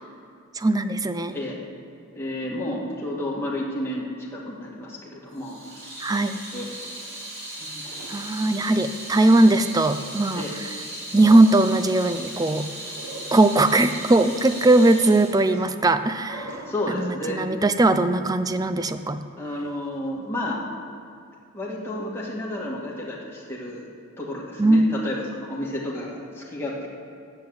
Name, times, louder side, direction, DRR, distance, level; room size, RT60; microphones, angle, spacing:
voice 1, 0.6-1.3 6.0-6.4 8.1-10.4 11.1-12.7 13.3-16.5 16.9-19.2 24.6-24.9, right 2 dB, 15° right, 10 dB, 0.5 m, -19 dB
voice 2, 2.1-5.6 6.5-6.8 7.6-7.8 10.4-10.5 16.7-17.4 19.4-20.6 21.5-23.9 24.2-26.9, left 1 dB, 10° left, -5 dB, 2.2 m, -31 dB
Water tap faucet / Sink (filling or washing), 5.4-16.7, right 1 dB, 60° right, 4.2 m, -37 dB
11.5 x 9.4 x 8.0 m, 2.4 s
head